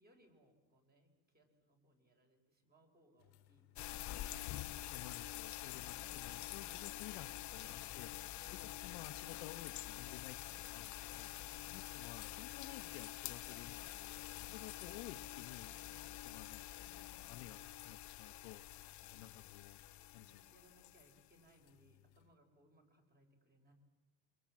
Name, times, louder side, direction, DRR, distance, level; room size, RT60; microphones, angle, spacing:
voice 1, 0.0-4.5 8.4-8.8 11.4-12.0 14.5-15.0 20.0-23.7, right 1 dB, 20° right, 3 dB, 5.0 m, -70 dB
sound 1, 3.2-22.3, left 18 dB, 65° left, 1.5 m, -65 dB
sound 2, 3.7-21.2, left 14 dB, 40° left, 0.8 m, -47 dB
voice 2, 4.9-8.1 8.8-11.3 11.7-14.1 14.5-15.8 16.2-18.6 19.1-19.8 20.1-20.4, left 16 dB, 80° left, 10 dB, 1.1 m, -54 dB
27.5 x 25.0 x 7.5 m, 1.2 s
cardioid pair, 140°, 43 cm